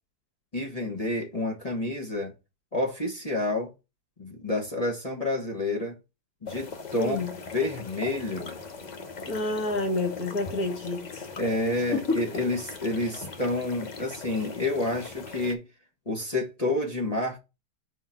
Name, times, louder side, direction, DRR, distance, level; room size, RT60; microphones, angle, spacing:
voice 1, 0.5-2.3 2.7-3.7 4.2-6.0 6.4-7.2 7.5-8.6 11.4-15.6 16.1-17.4, left 2 dB, 25° left, 1.0 m, -29 dB
sound 1, 6.5-15.5, left 4 dB, 85° left, 0.4 m, -40 dB
voice 2, 7.0-7.3 9.3-11.3 11.9-12.2, left 2 dB, 55° left, 2.1 m, -29 dB
5.2 x 3.8 x 5.7 m
omnidirectional pair, 2.0 m